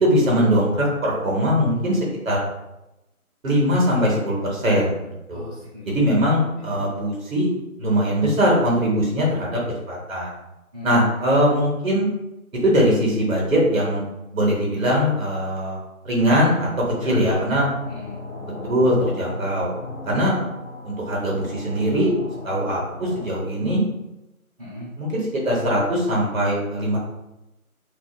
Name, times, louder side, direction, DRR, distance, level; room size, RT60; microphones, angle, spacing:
voice 1, 0.0-2.0 2.2-2.4 3.4-5.0 5.3-5.5 5.9-7.5 7.8-9.6 9.9-10.3 10.8-12.1 12.6-14.0 14.3-15.8 16.0-16.7 17.0-17.7 18.7-19.7 20.1-20.4 20.8-22.1 22.4-23.8 25.0-27.0, equal, 65° right, -3 dB, 0.9 m, -21 dB
voice 2, 5.3-6.2 6.5-6.8 10.7-11.3 16.9-17.6 17.9-18.2 24.6-24.9, left 1 dB, 25° right, -13 dB, 1.0 m, -38 dB
sound 1, 17.5-23.4, left 2 dB, 50° left, 0.8 m, -37 dB
2.7 x 2.4 x 2.3 m, 0.95 s
figure-of-eight pair, 170°, 43 cm